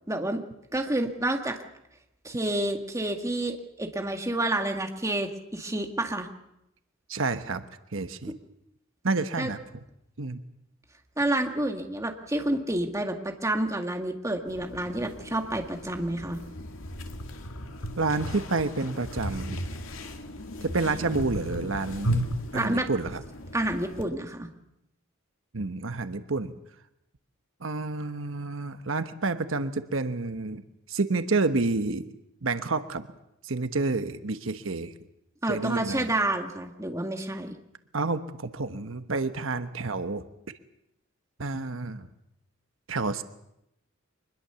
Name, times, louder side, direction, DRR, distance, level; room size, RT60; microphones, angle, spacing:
voice 1, 0.1-0.4 0.7-1.6 2.2-6.3 9.4-9.5 11.2-16.4 22.5-22.9 23.5-24.5 35.4-37.5, right 1 dB, 15° right, 4 dB, 1.9 m, -29 dB
voice 2, 7.1-7.6 7.9-8.3 9.0-9.6 10.2-10.4 18.0-19.6 20.6-22.3 22.5-23.2 25.5-26.5 27.6-30.6 30.9-32.1 32.4-33.1 33.4-34.9 35.4-36.1 37.9-40.2 41.4-42.1 42.9-43.2, right 3 dB, 80° right, 10 dB, 1.1 m, -29 dB
sound 1, 14.5-24.1, equal, 90° left, 2.2 m, -35 dB
24.0 x 21.0 x 7.0 m, 0.82 s
head